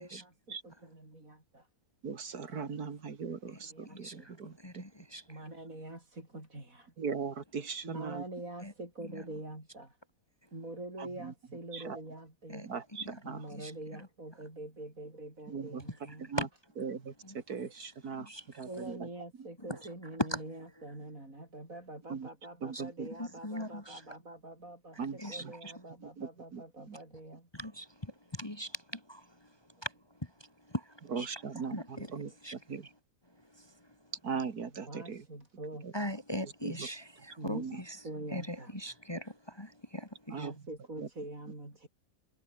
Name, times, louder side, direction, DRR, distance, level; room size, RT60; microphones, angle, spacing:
voice 1, 0.0-1.7 3.3-3.4 3.7-4.3 5.3-6.9 7.8-10.0 10.5-12.6 13.2-16.3 18.6-27.5 34.9-35.9 37.4-37.7 38.0-38.8 40.3-41.9, right 1 dB, 60° right, 7.7 m, -45 dB
voice 2, 2.0-4.8 7.0-8.2 11.0-11.3 11.7-12.0 12.6-13.5 15.5-16.5 16.8-18.3 18.5-19.1 19.4-19.5 22.1-22.3 22.6-23.1 25.0-25.2 25.4-25.5 26.0-27.0 31.1-32.9 34.2-35.3 35.8-35.9 36.6-36.9 37.5-37.8 40.3-40.6 41.0-41.1, right 5 dB, 80° right, 2.5 m, -39 dB
voice 3, 3.5-5.4 8.6-8.7 9.0-9.2 12.5-12.7 13.0-13.2 13.5-13.7 16.1-16.5 17.2-17.4 17.7-17.9 18.2-18.6 19.7-19.8 20.2-20.4 22.7-22.8 23.1-24.0 25.2-25.7 27.5-31.3 31.7-32.1 32.4-32.5 33.3-34.1 35.9-38.0 38.3-40.5, equal, 15° left, 2.2 m, -40 dB
omnidirectional pair, 1.6 m